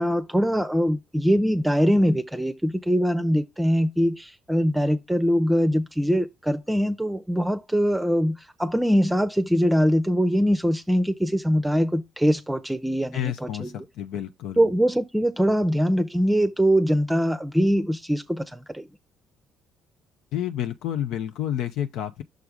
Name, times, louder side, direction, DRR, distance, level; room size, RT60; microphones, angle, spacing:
voice 1, 0.0-13.8 14.6-18.9, equal, 5° right, 0.7 m, -22 dB
voice 2, 13.1-14.7 20.3-22.2, left 11 dB, 65° left, 0.5 m, -30 dB
6.3 x 3.4 x 4.9 m
hypercardioid pair, 50°, 0 cm